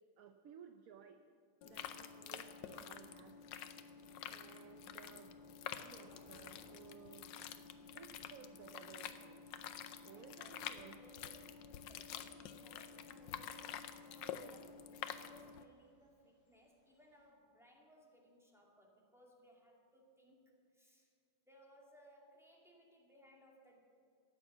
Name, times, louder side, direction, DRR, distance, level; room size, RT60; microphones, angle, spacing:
voice 1, 0.2-1.2 1.6-3.4 4.2-5.3 5.8-7.3 7.9-9.4 10.0-11.5, right 8 dB, 65° right, 7 dB, 0.9 m, -58 dB
sound 1, 1.6-15.6, left 9 dB, 80° left, 1.4 m, -49 dB
Thunder / Rain, 3.9-17.3, left 2 dB, 55° left, 2.5 m, -71 dB
voice 2, 10.1-14.9 15.2-21.1 21.5-23.8, equal, ahead, -2 dB, 2.1 m, -65 dB
13.5 x 9.1 x 7.1 m, 2.5 s
omnidirectional pair, 2.0 m